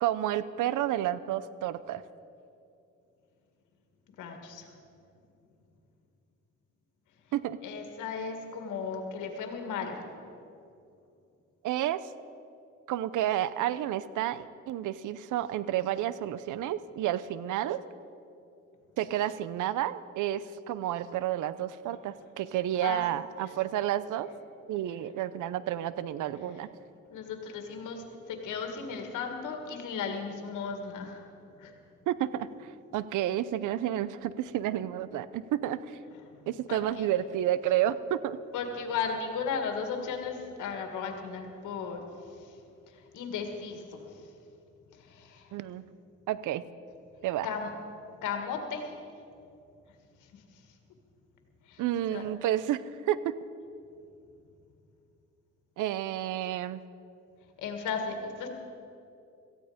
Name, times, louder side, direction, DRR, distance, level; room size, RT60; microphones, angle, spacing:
voice 1, 0.0-2.0 7.3-7.6 11.6-12.0 12.9-17.8 19.0-24.3 24.7-26.7 32.1-36.0 36.5-38.4 45.5-45.8 46.3-46.6 47.2-47.5 51.8-53.3 55.8-56.8, right 12 dB, 85° right, 16 dB, 0.7 m, -30 dB
voice 2, 4.2-4.7 7.6-10.1 22.8-23.0 27.1-31.2 31.6-31.7 36.7-37.1 38.5-42.0 42.4-42.5 42.9-44.0 45.0-45.5 47.4-47.7 48.2-48.9 51.7-51.8 52.1-52.3 57.6-58.5, left 5 dB, 85° left, 4 dB, 2.1 m, -35 dB
17.5 x 14.5 x 5.1 m, 2.6 s
cardioid pair, 90°, 30 cm